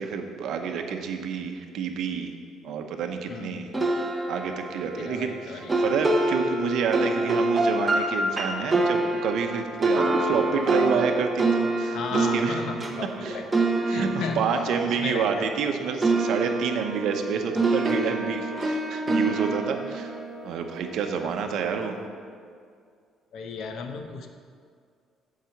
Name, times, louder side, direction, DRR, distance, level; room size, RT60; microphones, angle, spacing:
voice 1, 0.0-2.3 2.6-3.8 4.3-12.6 13.2-13.4 13.9-20.2 20.4-22.0, right 6 dB, 65° right, 5 dB, 0.8 m, -28 dB
voice 2, 3.3-3.6 5.0-6.0 11.9-13.5 13.9-14.4 14.8-15.6 23.3-24.3, left 5 dB, 60° left, 5 dB, 0.8 m, -35 dB
sound 1, 3.7-15.7 16.0-21.2, right 2 dB, 15° right, 0.8 m, -26 dB
7.5 x 4.9 x 7.0 m, 2.2 s
cardioid pair, 150°, 0 cm